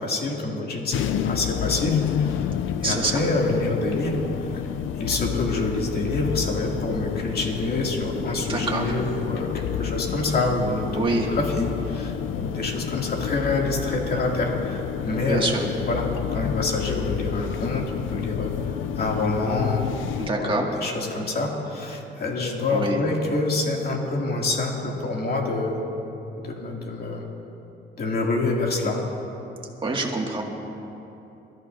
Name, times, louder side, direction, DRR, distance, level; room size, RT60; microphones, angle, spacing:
voice 1, 0.0-2.5 2.8-4.6 5.0-19.9 20.2-25.8 26.4-27.2 28.0-29.0, left 2 dB, 50° left, -1 dB, 2.6 m, -27 dB
sound 1, 0.9-20.3, left 9 dB, 85° left, 0.5 m, -30 dB
voice 2, 2.8-3.2 8.4-8.9 11.0-11.3 15.3-15.6 20.2-20.7 22.7-23.0 29.8-30.4, right 3 dB, 25° right, -1 dB, 2.1 m, -25 dB
23.5 x 13.5 x 2.7 m, 2.9 s
cardioid pair, 90°, 20 cm